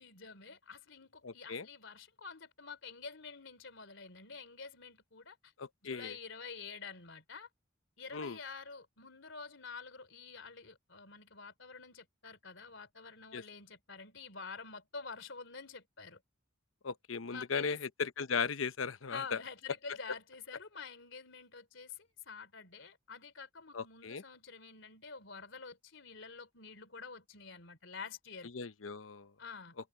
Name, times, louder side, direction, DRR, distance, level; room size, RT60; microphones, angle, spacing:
voice 1, 0.0-5.5 5.8-7.5 8.0-16.2 17.3-17.8 19.1-28.5 29.4-29.8, left 5 dB, 65° left, 3.7 m, -48 dB
voice 2, 1.2-1.7 5.6-6.1 8.1-8.4 13.3-13.4 16.8-19.4 23.7-24.2 28.5-29.3, left 5 dB, 90° left, 0.9 m, -37 dB
head